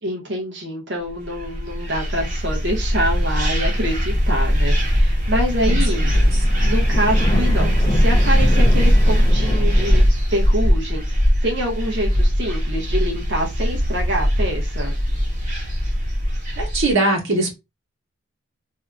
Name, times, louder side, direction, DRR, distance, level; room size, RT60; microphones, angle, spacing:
voice 1, 0.0-6.1 6.6-14.9, equal, 55° right, 0 dB, 0.8 m, -26 dB
sound 1, 1.2-16.9, equal, 40° right, 1.1 m, -19 dB
sound 2, 4.0-10.0, left 1 dB, 20° left, 0.4 m, -30 dB
voice 2, 16.6-17.6, right 2 dB, 80° right, 1 dB, 1.2 m, -20 dB
2.7 x 2.4 x 3.3 m, 0.23 s
head